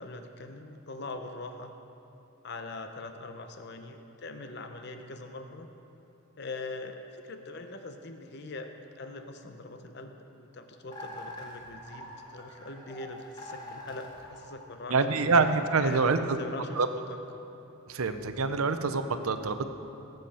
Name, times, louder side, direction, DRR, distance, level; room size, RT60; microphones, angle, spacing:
voice 1, 0.0-1.7 2.4-5.7 6.4-15.2 15.8-17.2, left 2 dB, 50° left, 6 dB, 0.7 m, -42 dB
sound 1, 10.9-15.1, left 1 dB, 20° left, 2.3 m, -44 dB
voice 2, 14.9-16.4 16.8-16.9 17.9-19.6, right 4 dB, 85° right, 9 dB, 0.7 m, -26 dB
18.0 x 8.0 x 4.3 m, 2.9 s
head